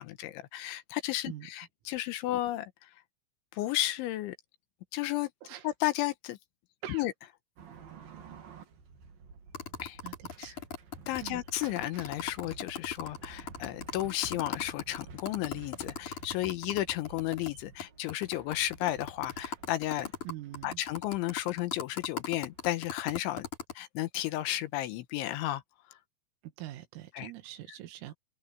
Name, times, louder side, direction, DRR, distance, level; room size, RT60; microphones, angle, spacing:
voice 1, 0.0-2.9 3.5-4.3 4.9-5.3 5.6-6.4 6.9-7.1 9.8-10.0 10.4-10.5 11.1-20.1 20.6-23.5 23.8-25.6 27.1-27.3, left 15 dB, 80° left, 3.2 m, -33 dB
sound 1, 7.6-22.7, right 5 dB, 50° right, 4.1 m, -52 dB
sound 2, 9.5-17.5 17.8-17.9 18.1-23.7, left 7 dB, 40° left, 6.0 m, -39 dB
voice 2, 10.0-10.6 11.2-11.4 20.2-20.8 26.4-28.1, right 14 dB, 85° right, 4.5 m, -43 dB
open air
omnidirectional pair, 5.8 m